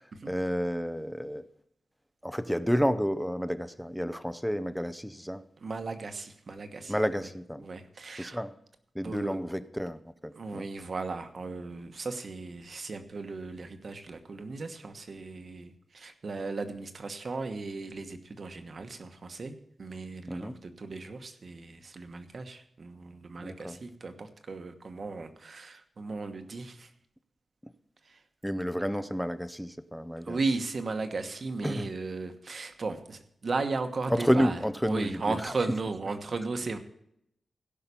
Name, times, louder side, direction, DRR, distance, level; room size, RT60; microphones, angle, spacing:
voice 1, 0.3-1.4 2.2-5.4 6.9-7.7 8.2-8.5 8.9-10.6 20.3-20.5 23.4-23.8 28.4-30.4 31.6-31.9 34.1-35.4, equal, ahead, 13 dB, 0.6 m, -30 dB
voice 2, 5.6-7.3 7.6-8.4 9.0-9.4 10.3-26.9 28.0-28.2 30.2-36.8, right 3 dB, 45° right, 8 dB, 1.2 m, -36 dB
17.0 x 5.7 x 6.9 m, 0.74 s
wide cardioid pair, 150°, 0 cm